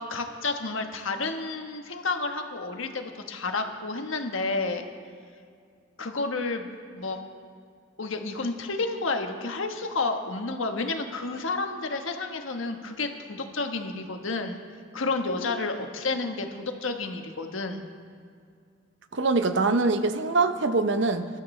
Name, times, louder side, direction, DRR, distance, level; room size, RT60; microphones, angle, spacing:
voice 1, 0.0-4.9 6.0-7.2 8.0-14.6 14.9-17.9, left 3 dB, 90° left, 5 dB, 1.3 m, -30 dB
voice 2, 19.1-21.3, right 3 dB, 65° right, 9 dB, 0.7 m, -23 dB
23.5 x 12.5 x 3.2 m, 2.2 s
head